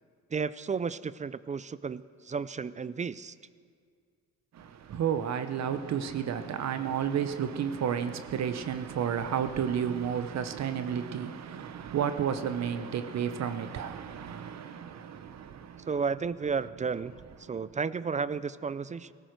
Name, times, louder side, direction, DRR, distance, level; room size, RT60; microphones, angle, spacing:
voice 1, 0.3-3.3 15.9-19.1, right 5 dB, 25° right, 0.4 m, -33 dB
voice 2, 4.5-15.9, right 8 dB, 60° right, 0.9 m, -32 dB
18.0 x 15.5 x 4.6 m
cardioid pair, 90°, 30 cm